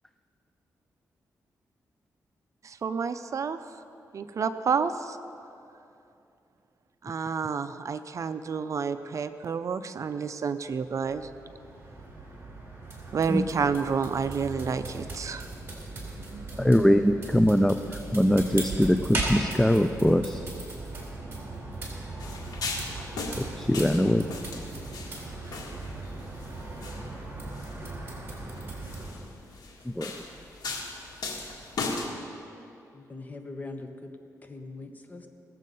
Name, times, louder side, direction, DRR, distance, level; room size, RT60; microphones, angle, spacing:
voice 1, 2.6-3.6 4.1-5.2 7.0-11.3 13.1-15.5 16.2-16.7, right 6 dB, 55° right, 11 dB, 0.5 m, -30 dB
sound 1, 10.6-29.1, right 2 dB, 35° right, 3.8 m, -38 dB
voice 2, 16.6-17.8 18.1-20.4 23.6-24.3 30.0-30.1, equal, 5° left, 9 dB, 0.4 m, -22 dB
sound 2, 22.2-32.1, left 3 dB, 80° left, 1.7 m, -38 dB
voice 3, 32.9-34.1 34.5-35.3, left 2 dB, 25° left, 5 dB, 1.2 m, -41 dB
19.0 x 7.5 x 5.4 m, 2.7 s
cardioid pair, 90°, 7 cm